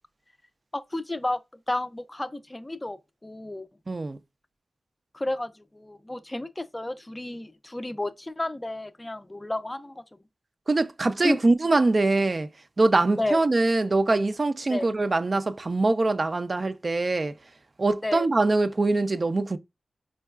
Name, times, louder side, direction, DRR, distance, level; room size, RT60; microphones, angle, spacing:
voice 1, 0.7-1.4 1.7-3.7 5.1-10.0 11.2-11.4 13.2-13.4 14.7-14.9 18.0-18.3, left 1 dB, 20° left, 0.4 m, -31 dB
voice 2, 3.9-4.2 10.7-12.5 12.8-17.3 17.8-19.6, right 2 dB, 45° right, 0.4 m, -23 dB
4.5 x 2.3 x 2.2 m
cardioid pair, 50°, 0 cm